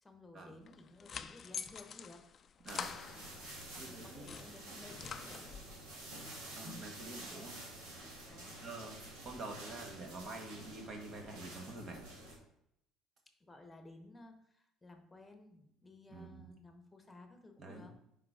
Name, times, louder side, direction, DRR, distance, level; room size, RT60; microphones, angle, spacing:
voice 1, 0.0-2.2 3.3-5.6 8.3-8.6 13.4-18.0, left 2 dB, 15° left, 5 dB, 1.0 m, -56 dB
sound 1, 0.7-3.7 4.1-5.8, left 7 dB, 40° left, 0.3 m, -46 dB
voice 2, 2.6-3.0 3.8-4.4 6.5-7.6 8.6-9.0 9.2-12.1 16.1-16.5 17.6-17.9, right 2 dB, 45° right, 3 dB, 1.4 m, -47 dB
sound 2, 2.7-12.4, right 1 dB, 90° right, 2.1 m, -49 dB
5.1 x 3.8 x 4.9 m, 0.77 s
supercardioid pair, 100°, 0 cm